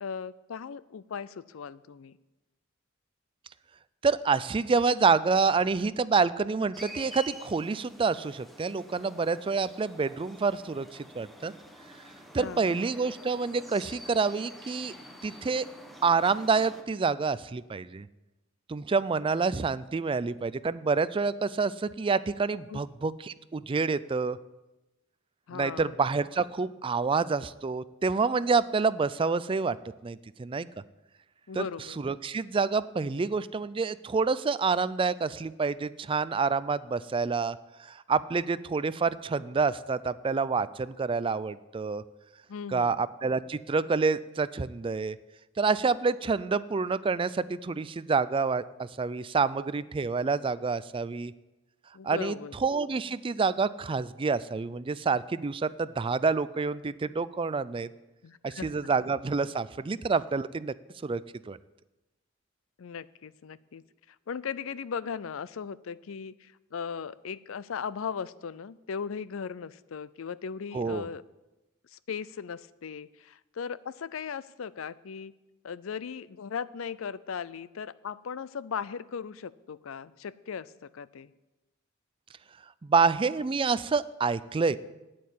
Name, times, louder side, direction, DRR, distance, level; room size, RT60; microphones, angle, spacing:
voice 1, 0.0-2.1 12.4-12.8 22.7-22.8 25.5-25.9 31.5-32.0 42.5-43.0 51.9-52.5 58.2-58.7 62.8-63.8 64.3-71.2 71.9-75.3 75.6-81.3, left 6 dB, 75° left, 18 dB, 0.5 m, -38 dB
voice 2, 4.0-10.9 11.1-11.5 12.3-14.9 15.2-15.7 16.0-18.1 18.7-24.4 25.5-29.8 30.0-30.7 31.5-42.0 42.7-45.2 45.6-51.3 52.0-57.9 58.4-60.7 61.0-61.6 70.7-71.0 82.8-84.8, right 4 dB, 25° right, 16 dB, 0.4 m, -28 dB
sound 1, 6.7-16.8, equal, ahead, 1.1 m, -48 dB
9.4 x 8.7 x 8.3 m, 1.0 s
head